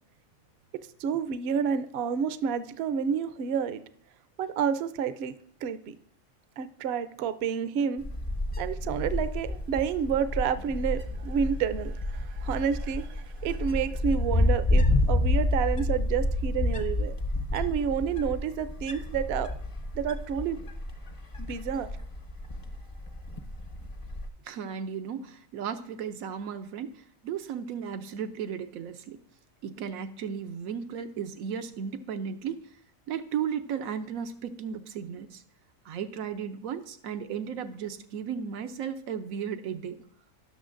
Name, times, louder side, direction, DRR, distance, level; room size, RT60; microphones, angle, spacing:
voice 1, 1.0-3.8 4.4-5.9 6.6-8.0 8.6-17.2 17.5-19.5 19.9-20.6 21.4-21.9, right 7 dB, 60° right, 12 dB, 0.7 m, -29 dB
Wind, 8.0-24.3, left 1 dB, 35° left, 0.6 m, -29 dB
voice 2, 24.4-29.2 29.6-32.7 33.1-35.4 35.8-40.0, right 7 dB, 90° right, 8 dB, 1.1 m, -35 dB
17.0 x 6.3 x 2.5 m, 0.63 s
omnidirectional pair, 1.4 m